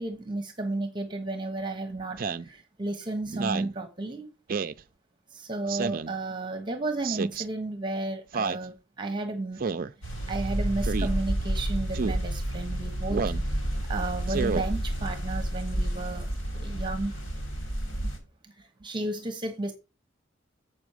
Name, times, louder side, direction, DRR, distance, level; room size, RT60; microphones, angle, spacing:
voice 1, 0.0-4.3 5.3-9.6 10.3-13.2 13.5-13.6 13.9-16.3 16.5-17.1 17.9-18.1 18.4-19.7, right 2 dB, 25° right, 1.1 m, -33 dB
Speech synthesizer, 2.2-2.5 3.3-3.7 4.5-4.8 5.7-6.1 7.0-7.5 8.3-8.7 9.6-9.9 10.8-11.1 11.9-12.2 13.1-13.4 14.3-14.7, right 5 dB, 50° right, 0.5 m, -30 dB
sound 1, 10.0-18.2, right 1 dB, 85° left, 3.2 m, -30 dB
7.8 x 6.1 x 4.8 m
head